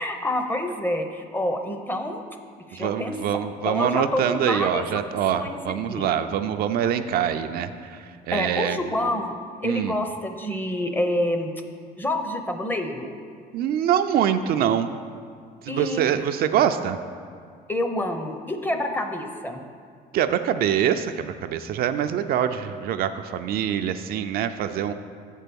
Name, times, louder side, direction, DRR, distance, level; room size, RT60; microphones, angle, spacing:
voice 1, 0.0-2.2 2.7-3.2 3.6-5.0 5.3-6.1 8.3-9.3 9.6-11.5 12.0-13.2 15.7-16.0 17.7-19.6, left 1 dB, 10° left, 6 dB, 0.6 m, -27 dB
voice 2, 2.7-8.8 9.6-10.0 13.5-14.9 15.6-17.0 20.1-24.9, right 9 dB, 65° right, 8 dB, 0.4 m, -24 dB
7.2 x 4.5 x 6.9 m, 2.1 s
cardioid pair, 110°, 17 cm